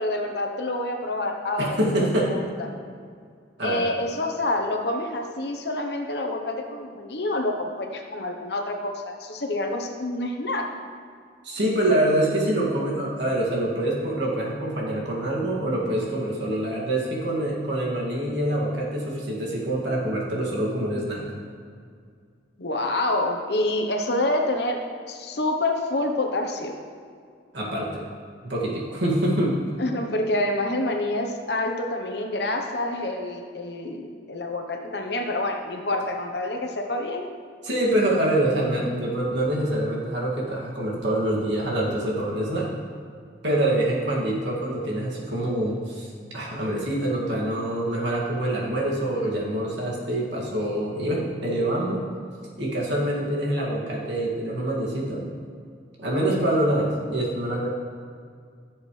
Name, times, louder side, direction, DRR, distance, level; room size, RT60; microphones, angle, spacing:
voice 1, 0.0-1.9 2.2-2.4 3.6-10.6 22.6-24.8 25.1-26.7 29.8-37.3, left 2 dB, 65° left, 3 dB, 1.0 m, -27 dB
voice 2, 1.6-2.3 3.6-3.8 11.4-21.2 27.5-28.0 28.5-29.6 37.6-42.7 43.4-52.0 52.6-55.2 56.0-57.7, right 1 dB, 75° right, -4 dB, 2.3 m, -25 dB
16.0 x 7.3 x 3.3 m, 2.2 s
head